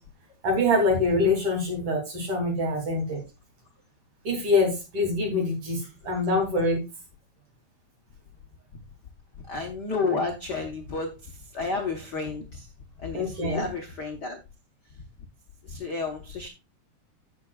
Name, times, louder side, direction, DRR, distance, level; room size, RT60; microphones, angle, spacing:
voice 1, 0.4-3.2 4.2-6.8 13.1-13.7, left 2 dB, 50° right, 2 dB, 3.8 m, -25 dB
voice 2, 9.5-12.7 13.0-14.4 14.9-15.0 15.6-16.5, left 4 dB, 50° left, 2 dB, 1.3 m, -31 dB
15.5 x 6.2 x 2.4 m, 0.26 s
omnidirectional pair, 3.5 m